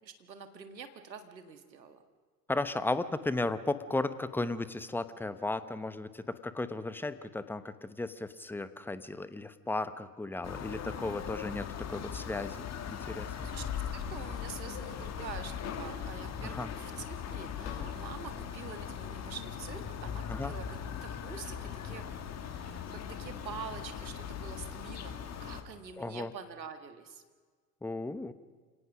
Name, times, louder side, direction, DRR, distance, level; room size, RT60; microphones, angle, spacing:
voice 1, 0.0-2.0 13.2-22.0 22.5-27.2, right 6 dB, 85° right, 8 dB, 1.9 m, -46 dB
voice 2, 2.5-13.5 16.4-16.7 20.3-20.5 26.0-26.3 27.8-28.3, left 2 dB, 5° left, 13 dB, 0.8 m, -35 dB
sound 1, 10.4-25.6, left 8 dB, 30° left, 2.1 m, -39 dB
sound 2, 15.6-16.0 17.6-18.0 19.0-19.2, left 5 dB, 60° left, 5.5 m, -44 dB
28.0 x 17.5 x 6.1 m, 1.5 s
figure-of-eight pair, 85°, 50 cm